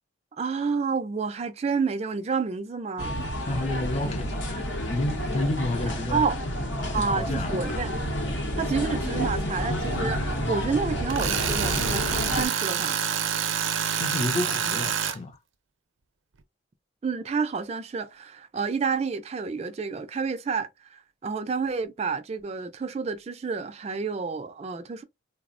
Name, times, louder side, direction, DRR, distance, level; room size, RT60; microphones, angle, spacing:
voice 1, 0.4-3.1 6.1-6.4 6.9-7.9 8.6-13.0 17.0-25.0, right 5 dB, 35° right, 0.3 m, -29 dB
sound 1, 3.0-12.4, equal, 70° left, 0.7 m, -29 dB
voice 2, 3.4-4.6 4.8-6.2 6.9-7.9 14.0-15.4, left 2 dB, 35° left, 0.5 m, -30 dB
Tools, 11.1-15.2, right 8 dB, 80° right, 0.5 m, -27 dB
3.3 x 2.0 x 2.4 m
head